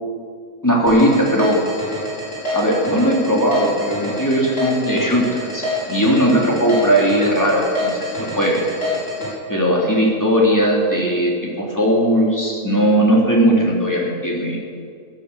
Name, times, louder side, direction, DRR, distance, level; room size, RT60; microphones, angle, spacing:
voice 1, 0.6-1.6 2.5-5.2 5.5-8.6 9.5-14.6, equal, 15° left, -3 dB, 2.9 m, -18 dB
sound 1, 0.9-9.3, left 2 dB, 60° left, 4.9 m, -26 dB
16.0 x 12.0 x 6.9 m, 2.3 s
omnidirectional pair, 1.4 m